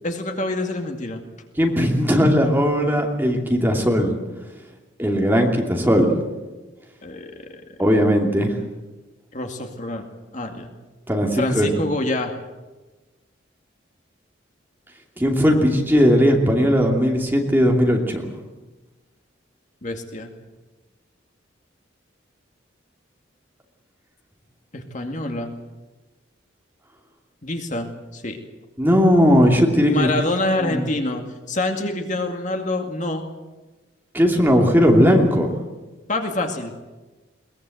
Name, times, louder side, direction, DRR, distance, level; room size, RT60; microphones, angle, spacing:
voice 1, 0.0-1.2 7.0-7.8 9.3-10.1 10.3-10.7 11.4-12.3 19.8-20.3 24.7-25.5 27.4-28.4 29.9-33.2 36.1-36.7, left 2 dB, 40° left, 4 dB, 2.2 m, -26 dB
voice 2, 1.6-4.1 5.0-6.2 7.8-8.5 11.1-11.8 15.2-18.2 28.8-30.1 30.6-30.9 34.1-35.5, equal, 10° right, 1 dB, 2.7 m, -18 dB
22.0 x 19.5 x 7.9 m, 1.2 s
head